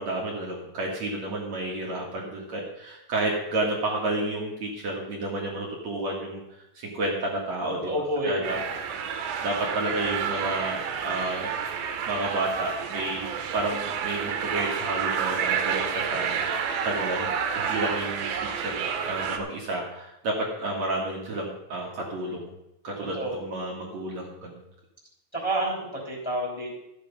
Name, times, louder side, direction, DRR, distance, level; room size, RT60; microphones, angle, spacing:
voice 1, 0.0-6.4 6.7-8.6 9.4-11.5 12.1-13.3 13.5-22.5 22.8-24.6, right 2 dB, 50° right, -2 dB, 2.9 m, -31 dB
voice 2, 7.8-8.5 23.1-23.3 25.3-26.7, right 1 dB, 10° left, -3 dB, 2.7 m, -29 dB
sound 1, 8.4-19.4, right 7 dB, 85° right, 2.9 m, -30 dB
13.5 x 8.3 x 5.3 m, 0.87 s
omnidirectional pair, 4.2 m